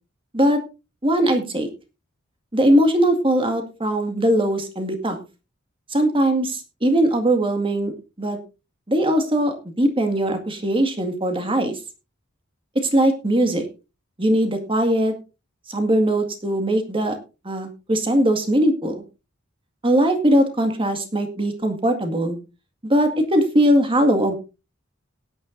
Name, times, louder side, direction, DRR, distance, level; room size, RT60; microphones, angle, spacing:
voice 1, 1.0-1.7 2.5-5.2 5.9-7.9 8.2-8.4 8.9-11.8 12.8-13.6 14.2-15.1 15.7-17.2 17.5-19.0 19.8-22.4 22.8-24.3, right 1 dB, 25° right, 6 dB, 2.0 m, -20 dB
18.5 x 9.9 x 2.6 m, 0.29 s
head